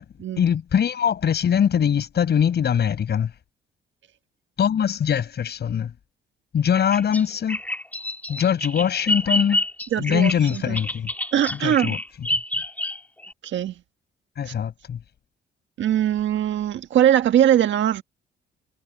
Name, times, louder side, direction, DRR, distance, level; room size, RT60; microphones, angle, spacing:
voice 1, 0.4-3.3 4.6-5.9 6.5-7.6 8.3-9.6 10.0-11.1 11.5-12.0 14.4-15.0, left 8 dB, 55° left, 5.8 m, -22 dB
Bird vocalization bird call bird song, 6.7-13.3, left 1 dB, 10° left, 3.7 m, -28 dB
voice 2, 9.9-10.8 11.3-11.9 13.4-13.7 14.5-14.6 15.8-18.0, right 11 dB, 70° right, 1.5 m, -21 dB
cardioid pair, 90°, 20 cm